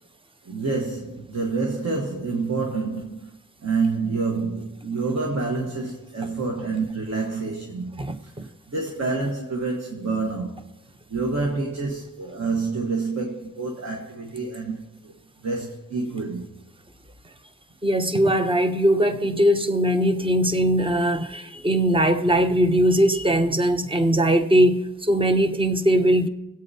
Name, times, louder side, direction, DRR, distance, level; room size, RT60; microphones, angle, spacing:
voice 1, 0.4-3.3 3.6-10.7 11.1-15.1 15.4-16.5, right 3 dB, 55° right, 1.3 m, -28 dB
voice 2, 8.0-8.5 17.8-26.3, right 1 dB, 15° right, 0.7 m, -20 dB
22.0 x 8.6 x 2.8 m
wide cardioid pair, 110°, 32 cm